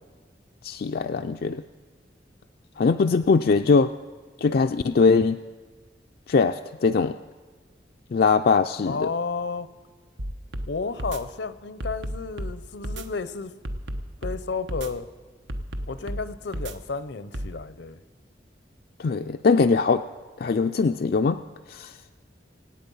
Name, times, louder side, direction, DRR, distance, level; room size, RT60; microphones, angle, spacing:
voice 1, 0.6-1.6 2.8-3.9 4.4-5.4 6.3-7.1 8.1-9.1 19.0-20.0 20.4-21.4 21.7-21.9, left 4 dB, 55° left, 7 dB, 0.4 m, -21 dB
voice 2, 8.8-9.7 10.7-13.5 14.2-15.1 15.9-18.0, left 4 dB, 75° left, 14 dB, 0.7 m, -32 dB
sound 1, 10.2-10.7 11.0-11.2 11.8-12.5 12.8-13.0 13.6-14.4 14.7-14.9 15.5-16.2 16.5-16.7 17.3-17.5, equal, 90° right, 1.1 m, -32 dB
26.0 x 8.7 x 5.5 m, 1.4 s
head